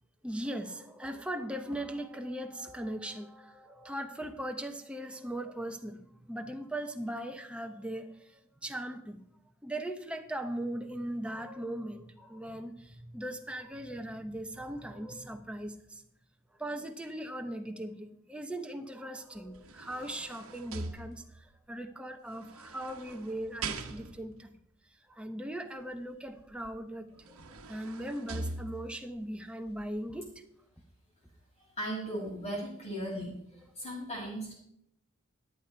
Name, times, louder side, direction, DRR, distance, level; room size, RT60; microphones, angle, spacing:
voice 1, 0.2-9.2 9.6-16.0 16.6-24.5 25.1-30.4, right 1 dB, 5° right, 0.9 m, -39 dB
sound 1, 19.3-21.6 22.4-24.4 26.6-26.7 27.1-29.1 29.7-29.8, right 3 dB, 70° right, 1.1 m, -42 dB
voice 2, 31.8-33.3 33.7-34.5, right 1 dB, 30° left, 6.3 m, -36 dB
14.0 x 10.5 x 4.5 m
head